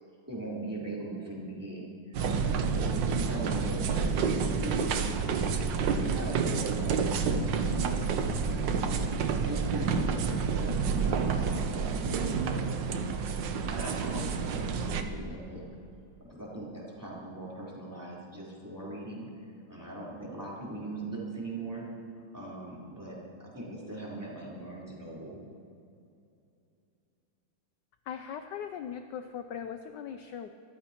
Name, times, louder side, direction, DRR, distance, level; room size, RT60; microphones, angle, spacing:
voice 1, 0.3-5.6 6.0-9.1 9.4-12.8 13.7-15.6 16.2-19.3 19.7-21.9 22.3-25.4, right 2 dB, 10° right, -7 dB, 3.8 m, -40 dB
sound 1, 2.1-15.0, right 5 dB, 65° right, 1.4 m, -29 dB
voice 2, 28.0-30.5, left 8 dB, 75° left, 8 dB, 1.0 m, -39 dB
24.0 x 14.5 x 3.0 m, 2.6 s
omnidirectional pair, 2.3 m